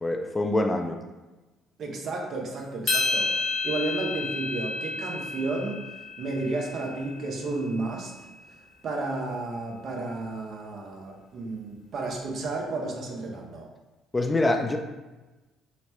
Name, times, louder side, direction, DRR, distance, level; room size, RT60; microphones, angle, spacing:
voice 1, 0.0-1.0 14.1-14.8, left 2 dB, 20° left, 3 dB, 0.3 m, -25 dB
voice 2, 1.8-5.9 6.2-8.3 8.8-13.7, right 3 dB, 55° right, 0 dB, 0.5 m, -32 dB
sound 1, 2.9-7.3, left 3 dB, 55° left, 0.8 m, -30 dB
2.9 x 2.1 x 3.0 m, 1.1 s
hypercardioid pair, 55°, 0 cm